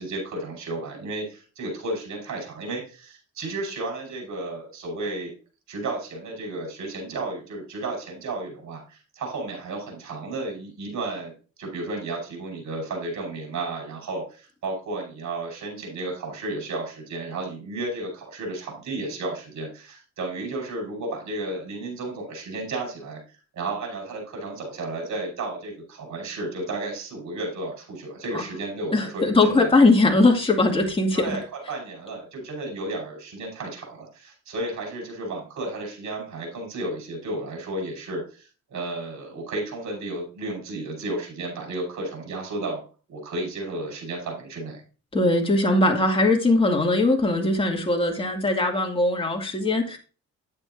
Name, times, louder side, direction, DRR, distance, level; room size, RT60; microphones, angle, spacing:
voice 1, 0.0-5.3 5.7-23.2 23.5-29.7 31.1-31.4 31.7-42.8 43.1-44.8, right 2 dB, 70° right, 5.5 m, -33 dB
voice 2, 28.9-31.4 45.1-50.0, left 2 dB, 20° left, 2.2 m, -20 dB
10.5 x 8.8 x 2.6 m
cardioid pair, 90°, 30 cm